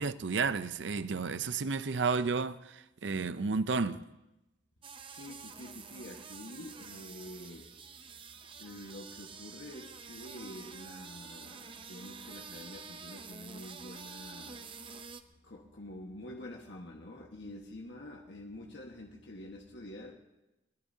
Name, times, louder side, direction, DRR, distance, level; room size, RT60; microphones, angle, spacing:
voice 1, 0.0-4.0, right 4 dB, 75° right, 0.6 m, -32 dB
sound 1, 4.8-15.2, right 5 dB, 25° right, 0.7 m, -48 dB
voice 2, 5.1-8.1 8.4-20.1, left 1 dB, 70° left, 1.5 m, -47 dB
23.0 x 20.5 x 2.8 m
head